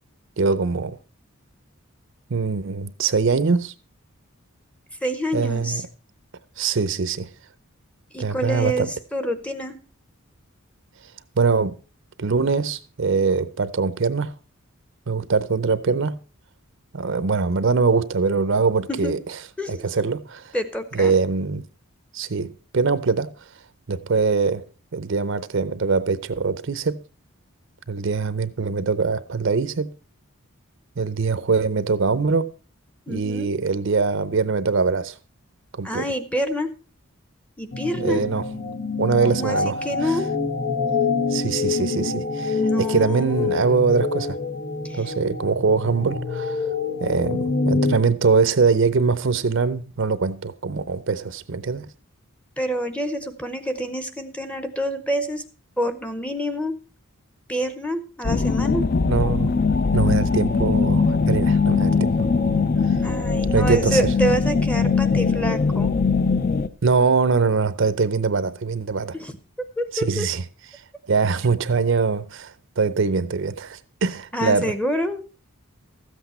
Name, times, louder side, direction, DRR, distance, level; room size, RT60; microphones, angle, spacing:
voice 1, 0.4-0.9 2.3-3.7 5.3-5.8 6.6-7.3 8.2-8.9 11.4-11.7 12.2-14.3 15.1-16.2 16.9-19.2 19.7-20.5 20.9-21.6 22.1-23.3 23.9-24.6 24.9-27.0 27.9-29.9 31.0-32.5 33.1-35.2 35.7-36.0 38.0-38.4 39.0-39.8 41.3-42.6 42.9-44.4 44.9-46.6 47.0-51.9 59.0-59.5 59.9-62.1 63.5-64.0 66.8-69.2 69.9-70.4 71.1-74.7, right 4 dB, 55° right, 0.6 m, -22 dB
voice 2, 5.0-5.8 8.1-9.8 18.9-19.2 19.6-19.9 20.5-21.1 33.1-33.5 35.8-36.7 37.6-38.2 39.3-40.3 42.6-43.6 44.8-45.1 52.6-55.4 55.8-56.8 57.5-58.8 63.0-65.9 69.1-69.4 69.8-70.3 74.3-75.2, equal, 5° left, 0.7 m, -27 dB
sound 1, 37.7-48.0, left 4 dB, 80° left, 1.4 m, -26 dB
sound 2, 58.2-66.7, left 4 dB, 40° left, 0.5 m, -21 dB
13.5 x 8.1 x 4.2 m
head